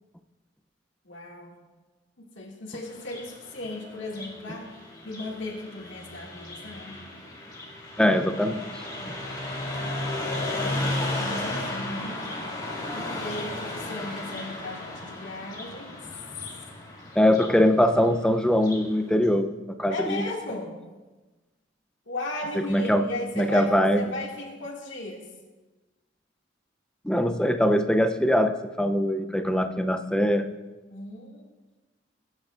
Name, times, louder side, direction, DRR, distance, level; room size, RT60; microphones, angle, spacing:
voice 1, 1.0-1.6 2.2-7.0 9.0-9.4 9.7-10.3 10.6-12.2 12.9-15.9 19.9-20.8 22.1-25.3 30.9-31.4, left 2 dB, 75° left, -3 dB, 2.1 m, -37 dB
Car passing by, 2.9-18.9, left 2 dB, 20° left, 2.3 m, -34 dB
voice 2, 8.0-8.6 17.2-20.3 22.7-23.1 23.4-24.1 27.0-30.5, equal, 5° left, 8 dB, 0.5 m, -22 dB
22.0 x 9.7 x 2.5 m, 1.2 s
head